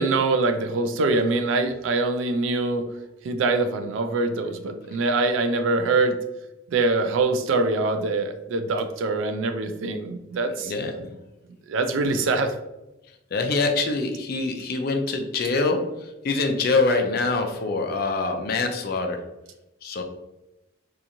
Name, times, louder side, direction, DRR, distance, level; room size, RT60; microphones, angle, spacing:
voice 1, 0.0-2.9 3.2-6.2 6.7-10.7 11.7-12.6, right 3 dB, 75° right, 8 dB, 0.3 m, -24 dB
voice 2, 10.6-11.1 13.3-19.2 19.8-20.0, left 3 dB, 50° left, 4 dB, 0.4 m, -25 dB
2.8 x 2.4 x 2.5 m, 0.95 s
head